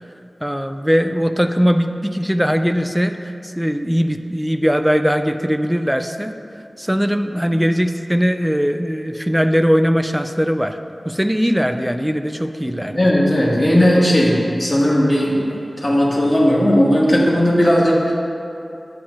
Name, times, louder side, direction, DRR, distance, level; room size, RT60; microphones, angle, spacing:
voice 1, 0.4-3.2 3.6-6.4 6.8-10.8 11.1-13.0, equal, 5° right, 8 dB, 0.3 m, -19 dB
voice 2, 12.6-18.1, equal, 20° left, -6 dB, 1.6 m, -16 dB
10.0 x 7.8 x 2.5 m, 2.6 s
wide cardioid pair, 85°, 0 cm